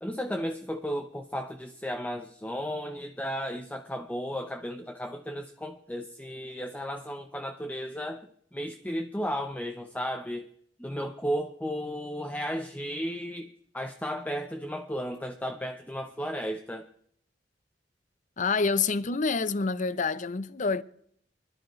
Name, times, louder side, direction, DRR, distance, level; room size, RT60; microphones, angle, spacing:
voice 1, 0.0-10.5 10.8-16.9, equal, 10° left, 0.7 m, -34 dB
voice 2, 18.4-20.8, left 4 dB, 45° left, 0.6 m, -27 dB
25.5 x 12.0 x 3.1 m
head